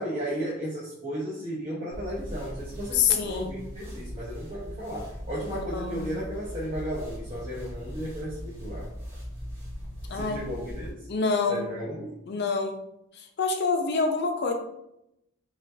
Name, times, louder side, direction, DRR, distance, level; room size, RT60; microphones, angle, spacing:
voice 1, 0.0-8.9 10.1-11.1 11.5-12.2, equal, 35° right, -8 dB, 0.8 m, -34 dB
sound 1, 1.9-10.9, equal, 15° right, 1.4 m, -39 dB
voice 2, 2.9-3.6 5.5-6.1 10.1-10.4 11.1-11.7 12.3-12.8 13.1-14.5, left 5 dB, 55° left, 5 dB, 0.5 m, -27 dB
5.1 x 2.4 x 2.7 m, 0.84 s
head